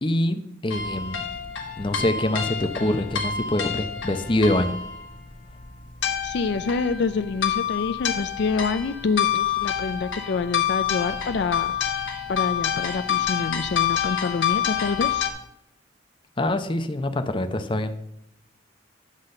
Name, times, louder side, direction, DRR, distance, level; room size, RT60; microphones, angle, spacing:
voice 1, 0.0-1.2 1.8-4.8 16.4-17.9, left 1 dB, 25° left, 7 dB, 0.7 m, -25 dB
sound 1, 0.7-15.3, left 8 dB, 85° left, 1.2 m, -28 dB
voice 2, 6.2-12.0 12.3-15.3, left 4 dB, 60° left, 10 dB, 0.4 m, -27 dB
9.8 x 4.0 x 6.4 m, 0.81 s
head